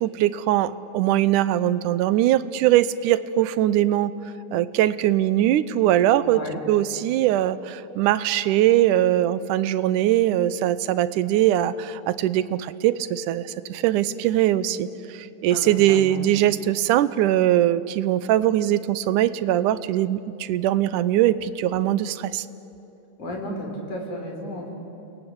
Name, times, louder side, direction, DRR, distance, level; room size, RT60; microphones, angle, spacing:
voice 1, 0.0-4.1 4.5-22.5, right 13 dB, 85° right, 15 dB, 2.3 m, -21 dB
voice 2, 6.2-6.6 15.5-16.4 23.2-24.7, left 1 dB, 70° left, 1 dB, 5.7 m, -33 dB
29.5 x 20.5 x 9.7 m, 2.9 s
omnidirectional pair, 3.6 m